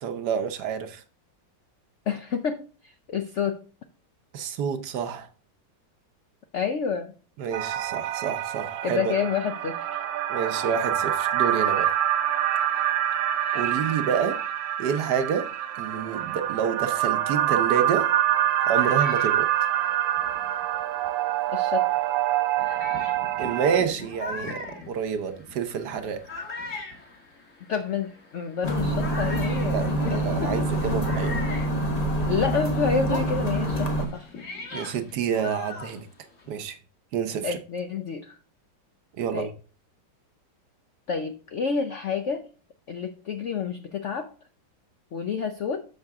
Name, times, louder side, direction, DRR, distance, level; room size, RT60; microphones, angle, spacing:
voice 1, 0.0-1.0 4.3-5.3 7.4-9.0 10.3-11.9 13.5-14.4 14.8-15.5 15.8-18.1 18.7-19.5 23.4-26.2 29.7-31.4 34.7-36.1 36.5-36.8 37.1-37.6 39.2-39.5, right 7 dB, 65° right, 1.3 m, -28 dB
voice 2, 2.1-3.6 6.5-7.1 8.8-10.0 21.5-21.9 27.7-30.5 32.3-34.3 37.4-38.4 39.3-39.5 41.1-42.5 42.9-44.3 45.1-45.9, left 6 dB, 70° left, 0.7 m, -29 dB
sound 1, 7.5-23.8, right 12 dB, 85° right, 1.4 m, -26 dB
sound 2, 18.3-21.3 22.0-22.1 22.6-32.6 32.9-36.6, left 3 dB, 45° left, 2.0 m, -41 dB
sound 3, 28.6-34.1, right 1 dB, 25° left, 1.0 m, -26 dB
6.6 x 6.5 x 3.5 m
omnidirectional pair, 2.0 m